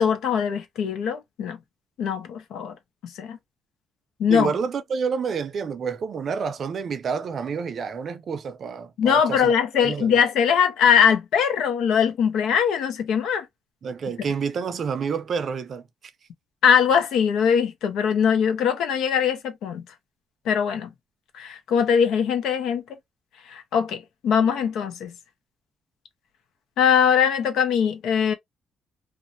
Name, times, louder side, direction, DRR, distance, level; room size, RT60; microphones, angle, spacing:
voice 1, 0.0-1.6 2.0-2.7 3.0-3.4 4.2-4.5 9.0-13.5 16.6-19.8 20.5-20.9 21.3-22.8 23.5-25.1 26.8-28.3, left 7 dB, 80° left, 0.6 m, -21 dB
voice 2, 4.3-9.5 9.8-10.2 13.8-15.8, right 6 dB, 55° right, 0.5 m, -28 dB
2.6 x 2.1 x 2.6 m
cardioid pair, 90°, 0 cm